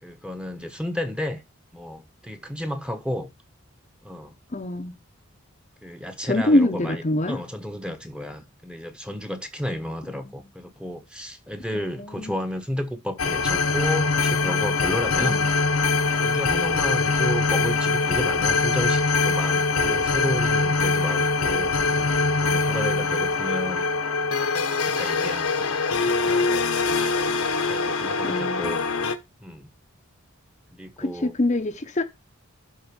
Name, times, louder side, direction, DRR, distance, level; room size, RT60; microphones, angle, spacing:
voice 1, 0.0-1.4 1.7-3.3 4.0-4.4 5.8-15.4 16.1-22.1 22.4-23.9 24.8-27.4 27.7-28.8 29.4-29.7 30.7-31.3, equal, 5° right, 1.0 m, -32 dB
voice 2, 4.5-5.0 6.2-7.4 11.7-11.9 12.2-12.3 15.3-15.4 28.2-28.7 31.0-32.0, left 1 dB, 30° left, 0.7 m, -24 dB
sound 1, 13.2-29.1, left 4 dB, 85° left, 1.1 m, -23 dB
11.5 x 3.9 x 5.2 m
head